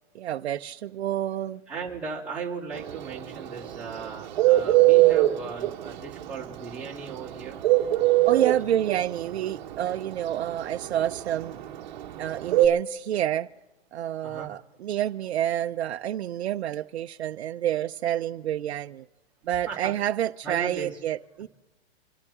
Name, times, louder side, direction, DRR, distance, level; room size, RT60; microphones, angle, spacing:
voice 1, 0.1-1.6 8.3-11.6 12.2-13.5 13.9-19.0 19.5-21.5, right 11 dB, 90° right, 0.6 m, -28 dB
voice 2, 1.7-7.6 14.2-14.5 19.7-19.9 20.4-21.0, right 5 dB, 5° right, 3.0 m, -37 dB
Bird, 2.7-12.7, right 16 dB, 45° right, 1.3 m, -21 dB
26.5 x 13.0 x 3.6 m
hypercardioid pair, 165°, 31 cm